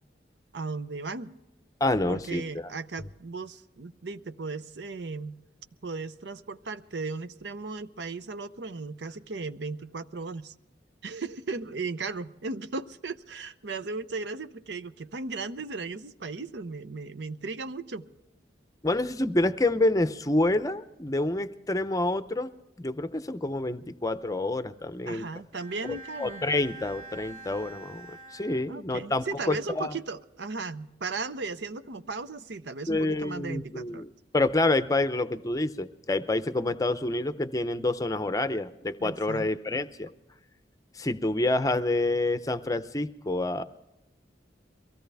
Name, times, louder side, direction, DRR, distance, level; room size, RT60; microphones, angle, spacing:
voice 1, 0.5-1.3 2.1-5.3 5.8-10.5 11.0-18.0 25.1-26.4 28.7-34.0 39.0-39.5, right 3 dB, 75° right, 0.7 m, -36 dB
voice 2, 1.8-2.7 18.8-22.5 22.8-25.3 25.9-30.0 32.9-34.1 34.3-40.1 40.9-43.6, left 2 dB, 20° left, 0.6 m, -28 dB
Bowed string instrument, 25.5-29.2, right 3 dB, 35° right, 1.5 m, -46 dB
23.0 x 16.5 x 3.4 m
head